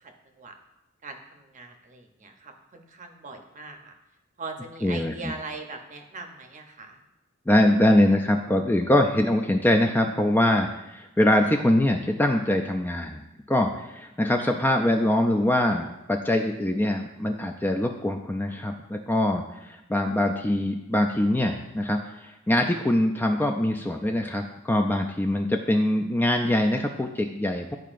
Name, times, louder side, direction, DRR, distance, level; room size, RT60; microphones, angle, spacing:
voice 1, 1.0-3.9 4.4-7.0, right 3 dB, 40° right, 4 dB, 0.7 m, -40 dB
voice 2, 4.8-5.3 7.5-13.2 13.5-27.8, left 1 dB, 10° left, 3 dB, 0.3 m, -23 dB
10.5 x 4.6 x 2.5 m, 0.93 s
head